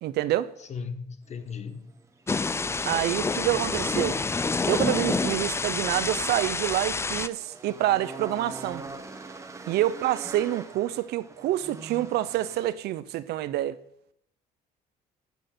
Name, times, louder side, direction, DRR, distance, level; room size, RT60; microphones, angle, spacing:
voice 1, 0.0-0.5 2.9-4.2 4.7-8.8 9.7-13.8, right 14 dB, 75° right, 0.7 m, -27 dB
voice 2, 0.6-1.9, left 5 dB, 40° left, 1.2 m, -37 dB
sound 1, 1.3-12.7, right 3 dB, 15° right, 1.3 m, -44 dB
Thunder / Rain, 2.3-7.3, left 4 dB, 15° left, 0.4 m, -28 dB
12.0 x 6.5 x 7.8 m
cardioid pair, 110°, 17 cm